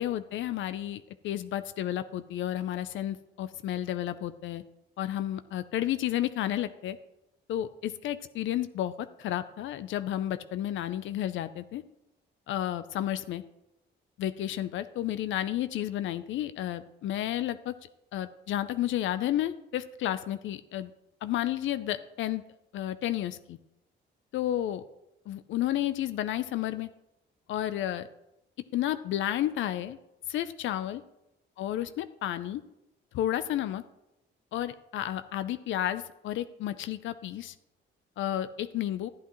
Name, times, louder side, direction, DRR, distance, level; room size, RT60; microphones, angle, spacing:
voice 1, 0.0-4.6 5.0-7.0 7.5-11.8 12.5-13.4 14.2-17.8 18.1-20.9 21.2-22.4 22.7-23.6 24.3-24.8 25.3-26.9 27.5-28.1 28.7-30.0 30.3-31.0 31.6-32.6 33.1-33.8 34.5-37.5 38.2-39.1, left 12 dB, 75° left, 12 dB, 0.5 m, -31 dB
12.0 x 8.2 x 3.1 m, 0.88 s
cardioid pair, 90°, 20 cm